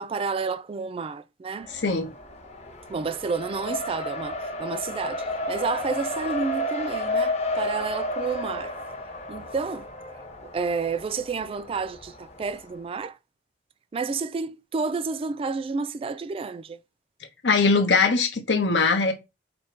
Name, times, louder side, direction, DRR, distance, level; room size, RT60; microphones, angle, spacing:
voice 1, 0.0-1.7 2.9-8.7 9.3-9.9 10.5-13.2 13.9-16.8, right 4 dB, 30° right, 0.3 m, -30 dB
Race car auto racing, 1.6-12.6, left 1 dB, 40° left, 0.9 m, -32 dB
voice 2, 1.7-2.1 17.4-19.1, left 4 dB, 90° left, 0.9 m, -21 dB
4.4 x 2.7 x 4.5 m
head